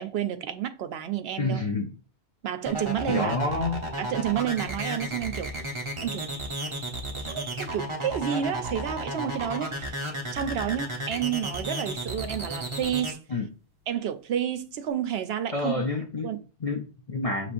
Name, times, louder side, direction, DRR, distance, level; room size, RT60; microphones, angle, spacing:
voice 1, 0.0-1.6 2.4-3.4 4.0-5.5 6.0-6.3 7.2-9.9 10.3-13.2 13.9-15.8 16.2-16.4, right 10 dB, 70° right, 0.8 m, -30 dB
voice 2, 1.4-1.9 3.1-3.9 13.3-13.5 15.5-16.3 16.6-17.5, left 3 dB, 40° left, 0.6 m, -28 dB
sound 1, 2.7-13.1, right 1 dB, 30° right, 1.0 m, -33 dB
6.8 x 3.1 x 2.5 m
omnidirectional pair, 1.1 m